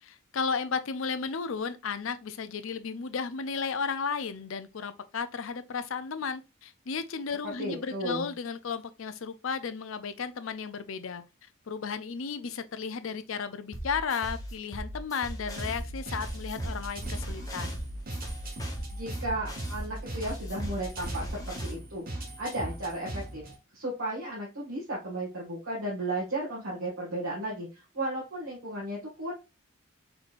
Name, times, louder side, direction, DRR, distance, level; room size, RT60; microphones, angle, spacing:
voice 1, 0.0-17.8, left 5 dB, 65° left, 0.5 m, -34 dB
voice 2, 7.4-8.3 18.9-23.4 23.7-29.3, right 1 dB, 75° right, 1.8 m, -34 dB
sound 1, 13.7-21.7, equal, 15° left, 1.1 m, -39 dB
sound 2, 15.6-23.6, right 1 dB, 45° right, 1.2 m, -39 dB
4.5 x 4.3 x 2.5 m
head